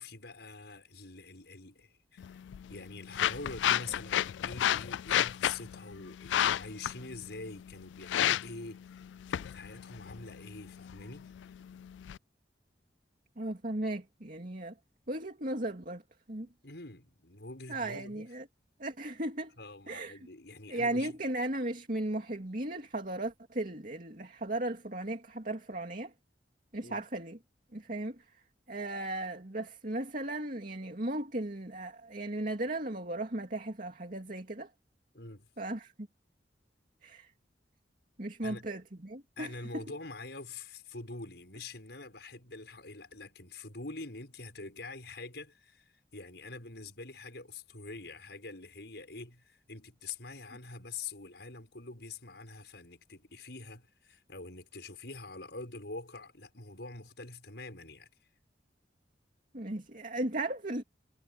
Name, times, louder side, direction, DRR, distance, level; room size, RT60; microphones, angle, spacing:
voice 1, 0.0-2.4 2.7-11.6 16.4-18.3 19.6-21.2 26.8-27.0 35.1-35.5 38.4-38.7 39.4-58.1, left 3 dB, 70° left, 6.8 m, -45 dB
wipe feet on doormat, 2.2-12.2, left 11 dB, 90° left, 0.3 m, -33 dB
voice 2, 13.4-14.7 15.1-16.0 16.3-16.5 17.7-18.5 18.8-19.5 19.9-20.2 20.7-26.1 26.7-27.4 27.7-28.4 28.7-34.7 35.6-36.1 37.0-37.3 38.2-39.9 59.5-60.8, right 1 dB, 50° right, 2.5 m, -36 dB
head